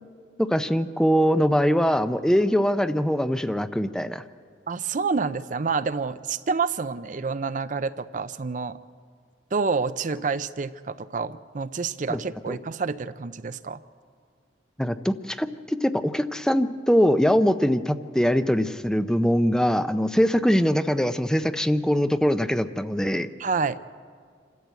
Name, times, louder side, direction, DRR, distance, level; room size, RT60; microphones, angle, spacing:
voice 1, 0.4-4.2 12.1-12.2 12.5-12.6 14.8-23.3, equal, 5° left, 10 dB, 0.5 m, -22 dB
voice 2, 4.7-8.8 9.5-13.8 23.4-23.8, right 4 dB, 45° right, 13 dB, 0.5 m, -28 dB
27.0 x 13.5 x 8.2 m, 2.1 s
head